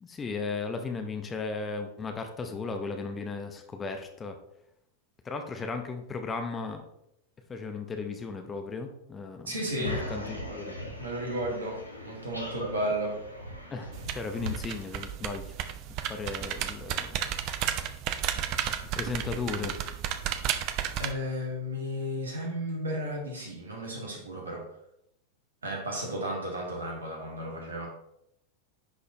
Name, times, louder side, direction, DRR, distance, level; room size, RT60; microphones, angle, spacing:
voice 1, 0.0-4.4 5.2-6.8 7.5-10.7 13.7-15.5 16.1-17.2 18.9-19.8, left 4 dB, 20° left, 6 dB, 0.8 m, -36 dB
voice 2, 9.5-10.0 11.0-13.2 21.0-24.6 25.6-27.9, equal, 70° right, -1 dB, 1.8 m, -33 dB
sound 1, 9.8-14.8, equal, 90° left, 1.0 m, -39 dB
sound 2, 13.9-21.1, right 10 dB, 40° right, 0.5 m, -33 dB
10.5 x 4.1 x 2.8 m, 0.80 s
figure-of-eight pair, 90°, 0 cm